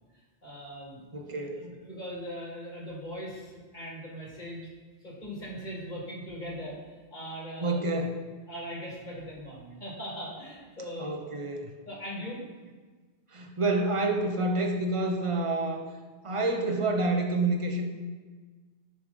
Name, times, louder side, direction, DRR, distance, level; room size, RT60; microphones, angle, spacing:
voice 1, 0.1-4.7 5.0-7.9 8.5-11.2 11.9-12.4, equal, 40° left, -4 dB, 2.0 m, -40 dB
voice 2, 1.1-1.7 7.6-8.1 11.0-11.7 13.3-15.8 16.2-17.8, right 2 dB, 30° right, 3 dB, 0.8 m, -28 dB
10.0 x 3.4 x 5.2 m, 1.4 s
omnidirectional pair, 1.1 m